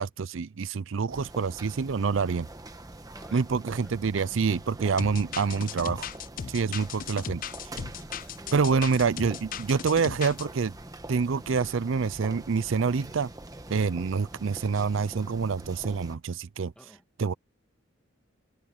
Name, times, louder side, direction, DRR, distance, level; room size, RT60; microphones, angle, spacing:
voice 1, 0.0-2.5 3.3-6.1 6.5-7.4 8.5-10.7 11.1-13.3 13.7-16.7 17.2-17.3, right 5 dB, 65° right, 0.5 m, -27 dB
sound 1, 1.1-16.2, right 1 dB, 20° right, 1.2 m, -44 dB
voice 2, 3.1-4.0 7.9-8.8 13.8-13.9 16.8-17.0, equal, 5° left, 2.3 m, -53 dB
sound 2, 5.0-10.5, left 8 dB, 40° left, 0.4 m, -37 dB
open air
head